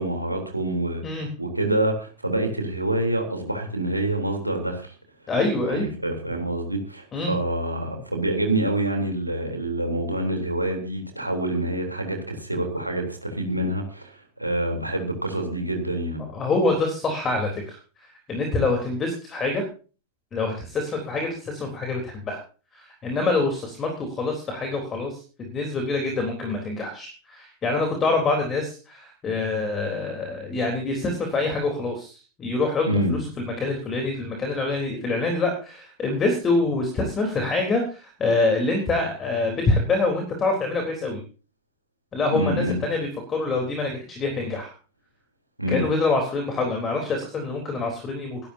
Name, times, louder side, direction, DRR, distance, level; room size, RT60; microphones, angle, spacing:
voice 1, 0.0-4.9 5.7-16.3 32.9-33.2 42.3-42.8 45.6-45.8, right 1 dB, 85° right, 3 dB, 3.5 m, -26 dB
voice 2, 5.3-5.9 7.1-7.3 16.3-19.6 20.3-22.4 22.7-41.2 42.1-44.7 45.7-48.4, left 3 dB, 25° left, 3 dB, 3.7 m, -26 dB
24.0 x 12.0 x 2.8 m, 0.36 s
figure-of-eight pair, 90°, 0 cm